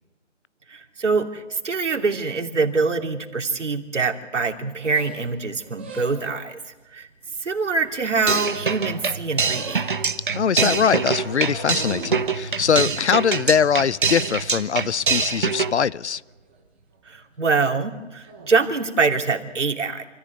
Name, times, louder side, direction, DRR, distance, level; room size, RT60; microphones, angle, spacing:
voice 1, 0.7-7.1 7.4-9.8 17.0-20.0, right 4 dB, 75° right, 2.9 m, -24 dB
sound 1, 4.8-6.5 7.2-8.5 8.8-10.3 11.0-14.7 15.1-15.8 16.0-16.6 16.9-17.2 18.2-18.7, right 3 dB, 10° right, 1.2 m, -41 dB
sound 2, 8.3-15.7, right 5 dB, 45° right, 1.1 m, -24 dB
voice 2, 10.4-16.2, left 7 dB, 70° left, 0.7 m, -22 dB
27.5 x 14.5 x 9.4 m
hypercardioid pair, 180°, 36 cm